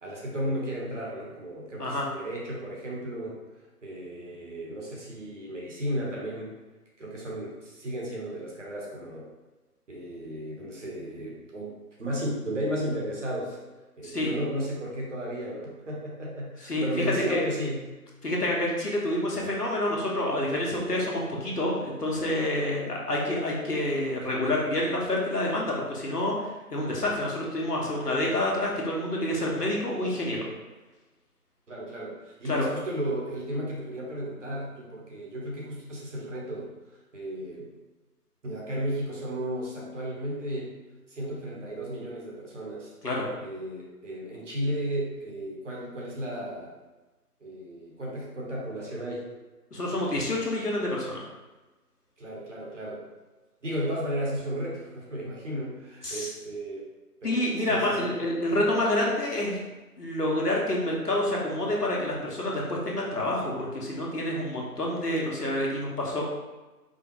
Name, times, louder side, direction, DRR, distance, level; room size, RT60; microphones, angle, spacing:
voice 1, 0.0-3.4 3.8-6.5 7.0-9.3 9.9-11.7 12.0-13.6 14.0-17.9 31.7-36.7 37.1-37.7 38.4-40.7 41.1-42.9 43.4-46.7 47.4-49.3 52.2-53.1 53.6-56.9 57.2-58.1, equal, 50° right, -4 dB, 1.1 m, -34 dB
voice 2, 14.0-14.3 16.7-16.9 17.3-17.4 18.2-30.5 32.4-32.7 43.0-43.3 49.7-51.2 56.0-56.3 57.2-59.6 60.0-66.3, left 1 dB, 80° left, -2 dB, 1.2 m, -28 dB
4.8 x 2.4 x 3.0 m, 1.2 s
figure-of-eight pair, 150°, 46 cm